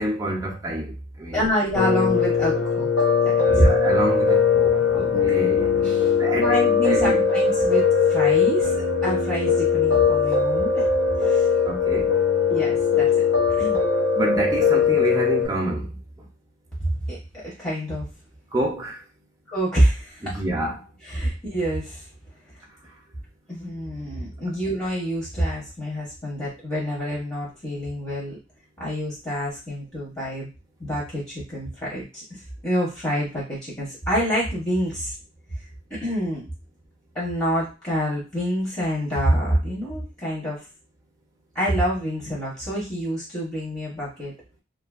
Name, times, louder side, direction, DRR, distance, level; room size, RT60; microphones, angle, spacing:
voice 1, 0.0-1.4 3.5-5.7 6.2-7.2 11.6-12.2 14.2-16.0 18.5-19.0 20.2-20.8, right 1 dB, 15° right, 0.5 m, -28 dB
voice 2, 1.3-2.9 3.2-3.6 4.9-5.1 5.7-10.9 11.2-11.5 12.5-13.1 13.5-13.8 16.8-17.2 17.4-18.0 19.5-20.4 21.1-22.0 23.5-28.4 28.8-30.5 30.8-35.1 35.9-36.5 37.1-40.6 41.5-44.3, equal, 25° left, 0.9 m, -27 dB
Piano, 1.7-15.5, left 5 dB, 85° left, 1.0 m, -20 dB
2.7 x 2.5 x 2.3 m
head